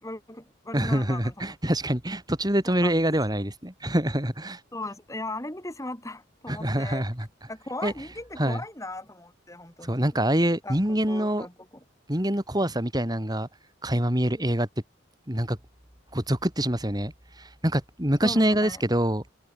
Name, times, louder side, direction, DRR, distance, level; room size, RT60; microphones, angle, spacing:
voice 1, 0.0-1.6 2.7-2.9 4.7-7.1 7.5-10.1 10.6-11.5 18.2-18.8, left 2 dB, 15° left, 3.7 m, -38 dB
voice 2, 0.7-4.6 6.5-7.3 7.8-7.9 8.4-8.6 9.8-11.5 12.1-13.5 13.8-14.7 15.3-15.6 16.1-17.1 17.4-19.2, right 1 dB, 20° right, 4.5 m, -25 dB
head